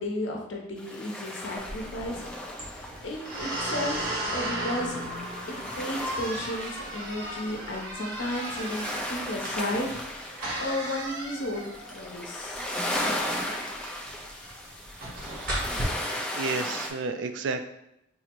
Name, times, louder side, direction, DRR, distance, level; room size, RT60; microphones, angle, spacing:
voice 1, 0.0-2.5 3.0-5.0 5.5-12.7, left 1 dB, 70° left, 0 dB, 0.8 m, -34 dB
sound 1, 0.8-16.9, left 1 dB, 5° left, 0.4 m, -36 dB
sound 2, 1.6-15.8, right 1 dB, 50° right, 1.0 m, -36 dB
voice 2, 14.9-15.7 16.4-17.6, right 4 dB, 70° right, 8 dB, 0.3 m, -33 dB
3.8 x 2.0 x 4.4 m, 0.80 s
head